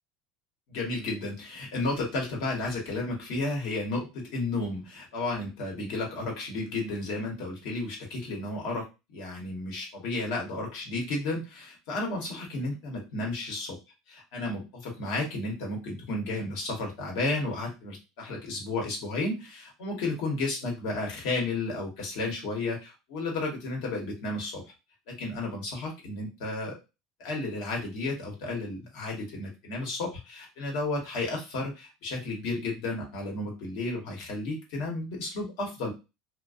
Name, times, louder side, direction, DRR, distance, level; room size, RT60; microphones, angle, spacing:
voice 1, 0.7-13.8 14.1-24.6 25.1-26.8 27.2-35.9, left 2 dB, 70° left, -1 dB, 1.0 m, -33 dB
2.4 x 2.2 x 2.5 m, 0.27 s
cardioid pair, 155°, 0 cm